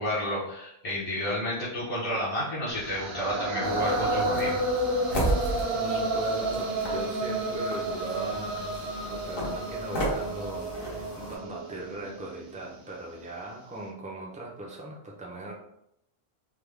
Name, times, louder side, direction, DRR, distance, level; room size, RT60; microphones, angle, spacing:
voice 1, 0.0-4.5, equal, 35° left, -9 dB, 0.9 m, -31 dB
sound 1, 2.7-12.7, right 2 dB, 75° right, 0.9 m, -31 dB
sound 2, 3.6-11.4, right 1 dB, 65° left, 1.1 m, -34 dB
voice 2, 5.7-15.5, right 2 dB, 10° right, -3 dB, 0.6 m, -39 dB
3.6 x 2.2 x 3.3 m, 0.79 s
omnidirectional pair, 1.1 m